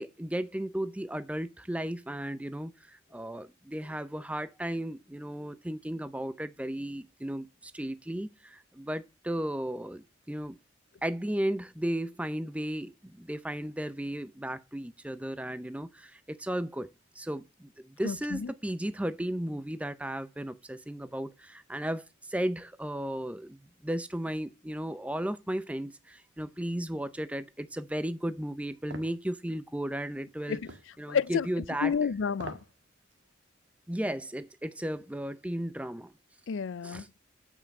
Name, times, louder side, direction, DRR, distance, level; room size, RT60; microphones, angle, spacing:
voice 1, 0.0-10.6 11.0-16.9 17.1-30.6 31.0-31.9 33.9-36.1 36.8-37.1, right 1 dB, 5° right, 0.5 m, -35 dB
voice 2, 18.0-18.5 30.5-30.7 31.1-32.6 36.5-37.0, left 6 dB, 70° left, 0.4 m, -30 dB
sound 1, 28.9-29.2 30.7-30.9 32.3-32.7 33.1-33.2, right 2 dB, 65° right, 1.5 m, -42 dB
9.0 x 5.9 x 5.3 m
head